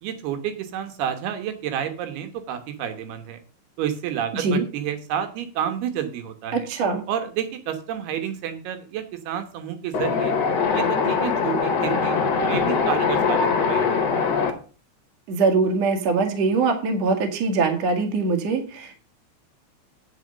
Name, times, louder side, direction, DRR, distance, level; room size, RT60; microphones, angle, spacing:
voice 1, 0.0-3.4 3.8-6.7 7.1-10.3 10.7-14.0, right 9 dB, 70° right, 8 dB, 2.8 m, -30 dB
voice 2, 4.3-4.7 6.5-7.0 15.3-19.1, right 4 dB, 55° right, 4 dB, 2.0 m, -22 dB
Wind, 9.9-14.5, left 5 dB, 70° left, 1.5 m, -22 dB
9.1 x 5.8 x 6.5 m, 0.37 s
omnidirectional pair, 5.3 m